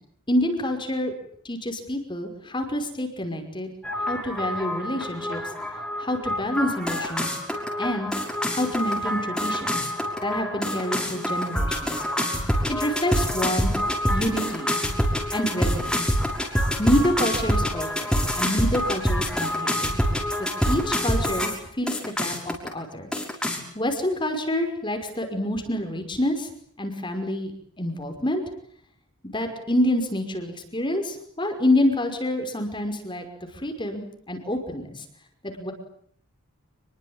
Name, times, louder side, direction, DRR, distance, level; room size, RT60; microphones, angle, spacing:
voice 1, 0.3-1.1 1.4-3.7 4.0-5.4 6.0-7.4 7.8-8.1 8.5-9.9 10.2-12.0 12.5-13.8 14.1-14.7 15.3-16.2 16.8-18.1 18.4-19.9 20.4-23.1 23.8-26.5 26.8-27.5 27.8-28.4 29.2-33.3 33.5-35.0 35.4-35.7, left 1 dB, 20° left, 5 dB, 5.4 m, -27 dB
sound 1, 3.8-21.6 21.9-22.7 23.1-23.6, equal, 5° left, 6.2 m, -26 dB
29.5 x 22.0 x 9.0 m, 0.64 s
head